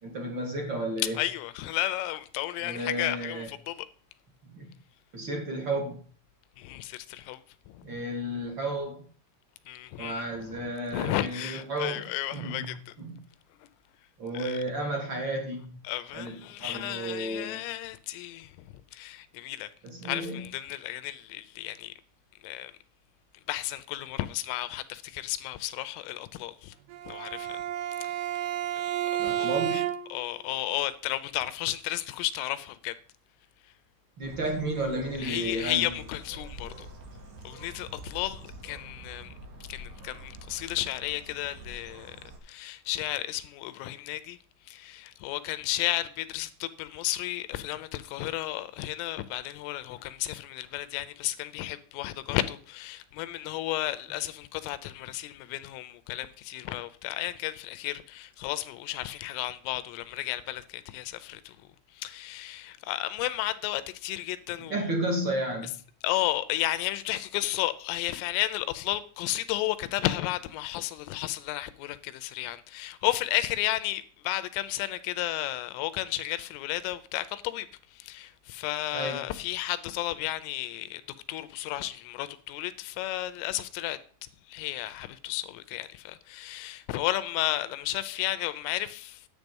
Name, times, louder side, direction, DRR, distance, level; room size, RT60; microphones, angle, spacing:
voice 1, 0.0-1.1 2.6-3.5 4.5-4.6 5.1-6.0 7.8-9.1 10.0-12.0 12.3-12.7 13.0-13.2 14.2-15.7 16.1-16.3 16.6-17.6 19.8-20.4 29.2-29.9 34.2-35.8 64.7-65.7 78.9-79.2, right 1 dB, 30° right, 2.2 m, -32 dB
voice 2, 1.1-3.9 6.6-7.9 9.7-13.0 13.6-13.7 14.3-14.6 15.8-18.6 18.9-19.7 20.0-21.9 22.4-22.7 23.5-26.8 27.1-27.6 28.0-28.4 29.3-29.8 30.1-33.0 33.6-33.7 35.2-36.9 37.4-39.3 39.6-42.2 42.4-44.4 44.6-61.6 61.9-64.9 66.0-81.0 81.3-84.0 84.5-89.3, left 15 dB, 80° left, 3.2 m, -33 dB
Bowed string instrument, 26.9-30.3, right 12 dB, 80° right, 3.6 m, -31 dB
Bird, 34.2-42.4, right 1 dB, 60° right, 3.7 m, -46 dB
10.5 x 8.7 x 5.3 m
omnidirectional pair, 6.0 m